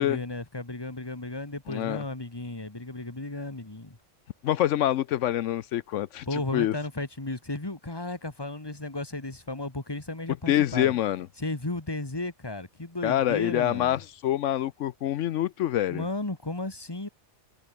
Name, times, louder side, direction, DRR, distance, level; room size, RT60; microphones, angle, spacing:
voice 1, 0.0-4.0 6.3-10.9 11.4-13.9 15.9-17.1, left 2 dB, 20° left, 2.1 m, -34 dB
voice 2, 1.7-2.0 4.4-6.7 10.5-11.3 13.0-16.1, left 12 dB, 80° left, 1.0 m, -26 dB
omnidirectional pair, 1.2 m